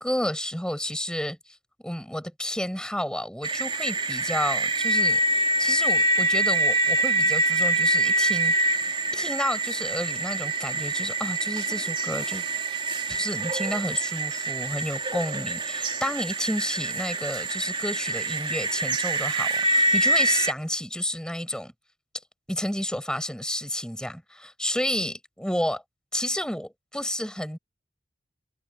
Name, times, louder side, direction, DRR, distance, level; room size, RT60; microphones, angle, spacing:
voice 1, 0.0-1.4 1.8-5.2 5.6-8.5 9.1-12.5 13.1-21.7 22.5-25.8 26.1-27.6, left 1 dB, 5° left, 7.6 m, -31 dB
sound 1, 3.4-20.5, right 1 dB, 25° right, 3.2 m, -25 dB
head